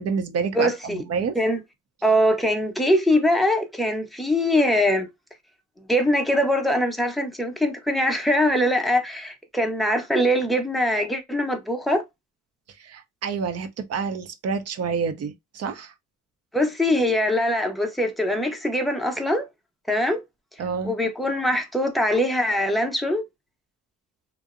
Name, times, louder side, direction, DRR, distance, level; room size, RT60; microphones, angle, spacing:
voice 1, 0.0-1.4 12.8-15.9 20.6-20.9, right 5 dB, 55° right, 0.5 m, -28 dB
voice 2, 0.5-1.0 1.4-1.6 2.0-5.1 5.9-12.0 16.5-19.5 19.9-20.2 20.8-23.2, left 1 dB, ahead, 0.6 m, -22 dB
2.6 x 2.0 x 2.4 m
cardioid pair, 90°, 31 cm